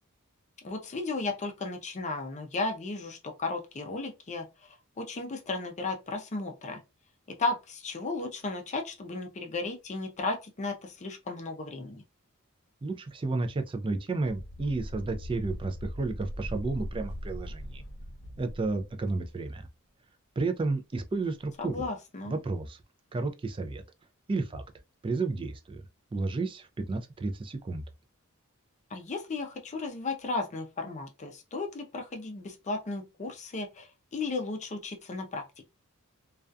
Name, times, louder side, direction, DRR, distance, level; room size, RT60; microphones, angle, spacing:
voice 1, 0.6-4.5 5.0-6.8 7.4-12.0 21.6-22.4 28.9-35.7, left 3 dB, 35° left, 0.5 m, -34 dB
voice 2, 12.8-17.8 18.4-19.7 20.4-21.9 22.3-22.8 23.1-23.8 24.3-24.6 25.0-25.8 26.1-27.8, right 3 dB, 25° right, 0.3 m, -32 dB
sound 1, 14.2-19.2, equal, 55° left, 0.9 m, -40 dB
2.3 x 2.2 x 2.5 m
head